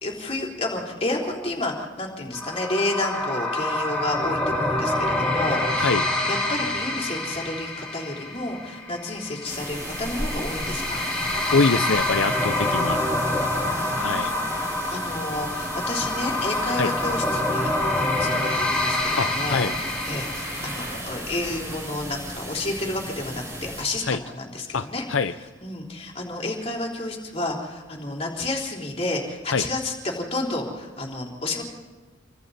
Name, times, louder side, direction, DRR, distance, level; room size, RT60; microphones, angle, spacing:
voice 1, 0.0-5.9 6.3-11.1 13.3-19.7 20.1-25.1 25.6-31.6, left 2 dB, 30° left, -1 dB, 3.9 m, -31 dB
sound 1, 2.3-21.0, left 1 dB, 5° left, 4.6 m, -27 dB
sound 2, 9.4-23.8, right 1 dB, 15° right, 7.6 m, -35 dB
voice 2, 11.5-13.0 14.0-14.3 16.8-16.9 19.2-19.7 24.0-24.2 24.7-25.3 29.5-29.7, left 4 dB, 80° left, 10 dB, 0.7 m, -24 dB
29.5 x 24.0 x 4.3 m, 1.3 s
head